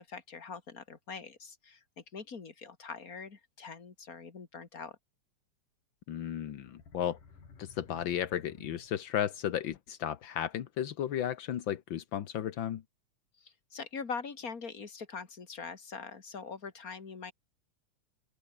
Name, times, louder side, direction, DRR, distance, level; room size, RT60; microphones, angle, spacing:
voice 1, 0.0-5.0 13.4-17.3, left 5 dB, 30° left, 2.5 m, -43 dB
voice 2, 6.1-7.2 7.6-12.8, left 10 dB, 65° left, 1.2 m, -34 dB
sound 1, 6.5-9.3, left 5 dB, 85° left, 6.7 m, -55 dB
open air
omnidirectional pair, 3.6 m